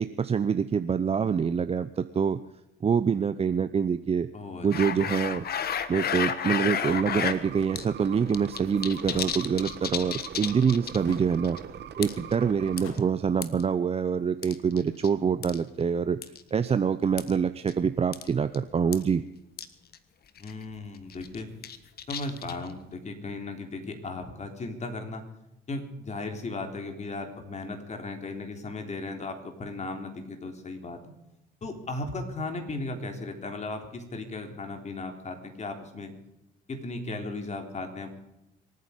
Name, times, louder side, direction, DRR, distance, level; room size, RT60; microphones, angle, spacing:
voice 1, 0.0-2.4 2.8-4.3 4.6-11.6 12.0-16.2 16.5-19.2, right 6 dB, 30° right, 11 dB, 0.7 m, -26 dB
voice 2, 4.3-5.0 20.4-21.5 22.1-25.2 25.7-31.1 31.6-36.1 36.7-38.1, left 2 dB, 35° left, 5 dB, 3.6 m, -36 dB
sound 1, 4.7-7.4 7.8-7.9 8.1-11.1 11.4-11.6 12.0-12.3 12.8-13.6 14.4-15.1 15.4-15.6 16.2-16.4 17.2-17.3 17.7-17.8 18.1-18.3 18.5-18.6 18.9-19.0 19.6-19.7 19.9-20.0 20.4-20.6 21.1-22.7, left 8 dB, 50° left, 1.4 m, -31 dB
sound 2, 6.8-12.8, right 9 dB, 60° right, 1.5 m, -42 dB
sound 3, 9.1-9.4 11.0-11.4 12.8-13.2, left 5 dB, 85° left, 3.0 m, -44 dB
26.0 x 9.6 x 5.2 m, 0.89 s
cardioid pair, 95°, 20 cm